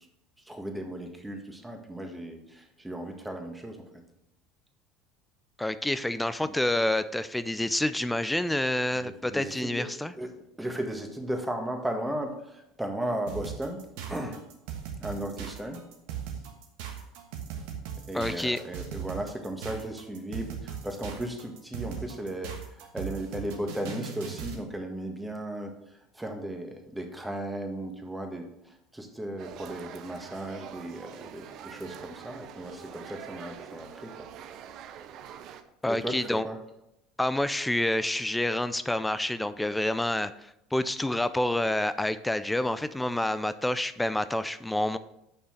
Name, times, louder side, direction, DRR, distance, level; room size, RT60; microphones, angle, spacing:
voice 1, 0.4-3.8 6.4-6.6 8.9-9.9 10.2-10.3 10.6-13.8 14.1-14.4 15.0-15.8 18.1-34.1 35.9-36.6, right 1 dB, 10° right, 4 dB, 1.6 m, -36 dB
voice 2, 5.6-10.1 18.1-18.6 35.8-36.5 37.2-45.0, left 1 dB, 5° left, 14 dB, 0.4 m, -28 dB
sound 1, 13.3-24.6, right 8 dB, 70° right, 1.4 m, -38 dB
sound 2, 29.4-35.6, right 9 dB, 55° right, 0.7 m, -45 dB
6.8 x 5.5 x 6.3 m, 0.83 s
hypercardioid pair, 75°, 0 cm